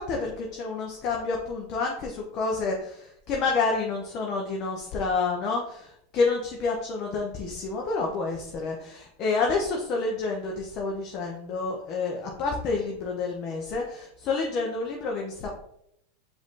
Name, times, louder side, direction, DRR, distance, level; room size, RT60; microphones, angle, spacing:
voice 1, 0.0-15.5, left 4 dB, 45° left, 0 dB, 0.8 m, -29 dB
4.8 x 2.7 x 3.7 m, 0.74 s
hypercardioid pair, 100°, 0 cm